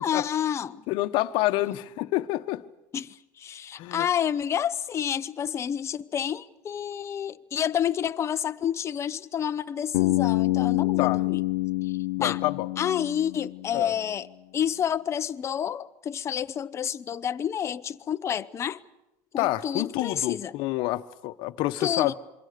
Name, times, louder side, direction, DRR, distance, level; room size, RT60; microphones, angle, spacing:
voice 1, 0.0-0.8 2.9-11.4 11.8-11.9 12.2-12.4 12.8-14.3 14.5-18.8 19.3-20.5 21.8-22.1, left 9 dB, 30° left, 0.8 m, -29 dB
voice 2, 0.9-2.6 3.8-4.1 11.0-11.2 12.2-12.7 13.7-13.9 19.4-22.1, left 17 dB, 60° left, 1.1 m, -28 dB
Bass guitar, 9.9-13.9, left 20 dB, 90° left, 0.8 m, -27 dB
27.0 x 24.0 x 6.7 m
cardioid pair, 140°, 9 cm